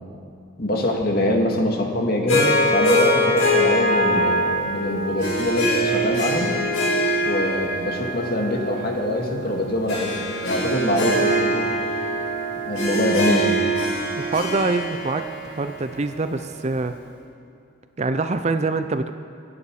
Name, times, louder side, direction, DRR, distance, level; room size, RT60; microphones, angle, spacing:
voice 1, 0.6-6.5 7.2-11.7 12.7-13.6, left 1 dB, 50° left, 0 dB, 2.1 m, -24 dB
Harp, 2.3-16.7, equal, 85° left, 4.6 m, -23 dB
voice 2, 14.2-16.9 18.0-19.1, right 3 dB, 35° right, 10 dB, 0.5 m, -25 dB
24.0 x 9.7 x 4.8 m, 2.7 s
head